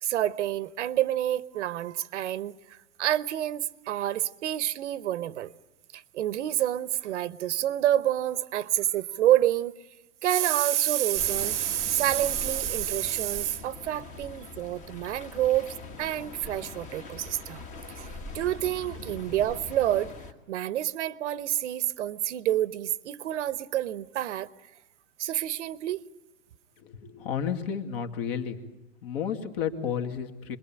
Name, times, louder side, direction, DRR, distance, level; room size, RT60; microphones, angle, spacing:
voice 1, 0.0-5.5 5.9-9.7 10.2-15.7 16.0-20.1 20.5-24.5 25.2-26.0, right 12 dB, 60° right, 1.0 m, -28 dB
sound 1, 11.1-20.3, left 3 dB, 20° left, 1.4 m, -42 dB
voice 2, 26.8-28.6 29.0-30.6, left 7 dB, 45° left, 2.4 m, -32 dB
27.0 x 22.0 x 8.9 m
supercardioid pair, 165°, 40 cm